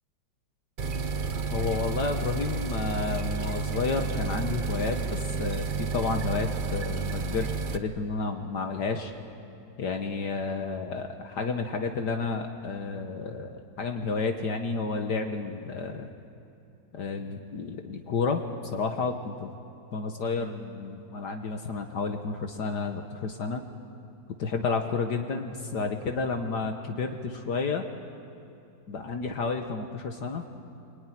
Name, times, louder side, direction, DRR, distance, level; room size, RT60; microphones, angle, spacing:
sound 1, 0.8-7.8, right 4 dB, 35° right, 0.8 m, -31 dB
voice 1, 1.5-9.1 9.8-16.1 16.9-18.4 18.7-19.5 19.9-23.6 24.4-27.8 28.9-30.4, left 4 dB, 65° left, 4 dB, 1.8 m, -31 dB
25.0 x 23.0 x 10.0 m, 2.8 s
omnidirectional pair, 2.0 m